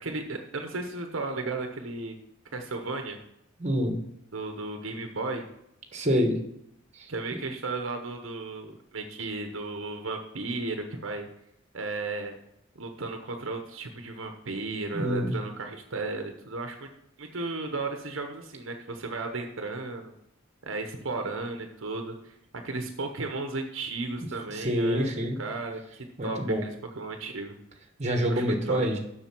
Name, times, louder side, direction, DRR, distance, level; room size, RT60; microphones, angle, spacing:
voice 1, 0.0-2.1 2.5-3.2 4.3-5.5 7.1-11.3 11.7-12.3 12.8-16.9 17.2-20.1 20.6-22.4 22.6-25.1 25.4-26.7 26.9-27.6 28.3-28.8, right 3 dB, 70° right, 5 dB, 0.9 m, -34 dB
voice 2, 3.6-4.0 5.9-6.4 7.0-7.1 14.9-15.3 24.5-25.4 26.2-26.6 28.0-29.0, equal, 35° right, 4 dB, 1.3 m, -26 dB
7.5 x 6.3 x 6.0 m, 0.77 s
head